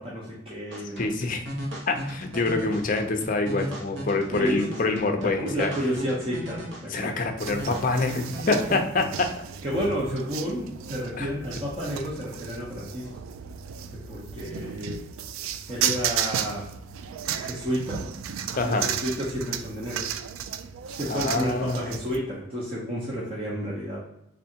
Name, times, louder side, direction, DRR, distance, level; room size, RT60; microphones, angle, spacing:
voice 1, 0.0-1.1 4.3-7.1 9.6-13.2 13.9-15.0 15.7-16.7 17.4-18.0 18.6-20.1 20.9-24.0, equal, 25° right, -5 dB, 0.7 m, -31 dB
sound 1, 0.7-8.8, equal, 60° right, 0.9 m, -37 dB
voice 2, 1.0-1.4 1.9-5.7 6.9-9.4 11.2-11.3 18.5-18.9 21.1-21.9, left 3 dB, 40° left, 5 dB, 0.5 m, -26 dB
sound 2, 7.4-22.2, right 8 dB, 85° right, 0.3 m, -34 dB
3.7 x 3.3 x 2.7 m, 0.82 s
head